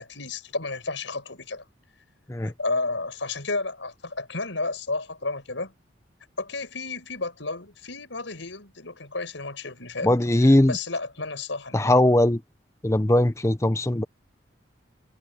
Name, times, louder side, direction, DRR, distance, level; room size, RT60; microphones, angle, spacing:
voice 1, 0.0-1.6 2.4-5.7 6.4-10.2 10.4-12.1, left 3 dB, 85° left, 5.8 m, -32 dB
voice 2, 10.0-10.8 11.7-12.4 12.8-14.0, left 1 dB, 15° left, 0.7 m, -20 dB
head